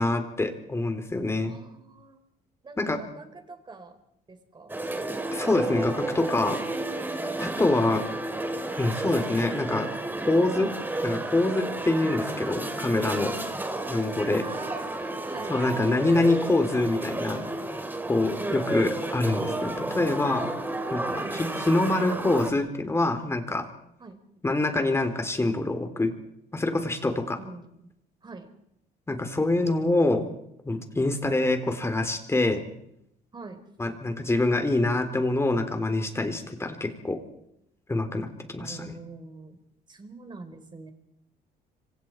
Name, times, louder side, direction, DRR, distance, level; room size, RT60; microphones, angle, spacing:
voice 1, 0.0-1.5 2.8-3.0 5.3-6.6 7.4-8.0 8.8-9.9 10.3-10.7 11.0-13.3 13.9-14.4 15.5-17.4 18.1-20.5 20.9-23.7 24.4-26.1 26.5-27.4 29.1-30.3 30.7-32.6 33.8-37.2 37.9-38.8, left 2 dB, 15° left, 7 dB, 3.7 m, -25 dB
voice 2, 1.4-2.2 2.6-4.0 4.3-4.8 7.4-7.6 12.7-13.0 13.4-13.7 14.4-15.6 18.4-18.8 21.1-21.4 24.0-24.2 27.4-27.8 28.2-28.5 33.3-33.6 38.6-39.6 39.9-40.9, right 3 dB, 25° right, 7 dB, 4.4 m, -44 dB
sound 1, 4.7-22.5, right 2 dB, 10° right, 3.1 m, -32 dB
27.0 x 25.5 x 4.7 m, 0.76 s
cardioid pair, 110°, 17 cm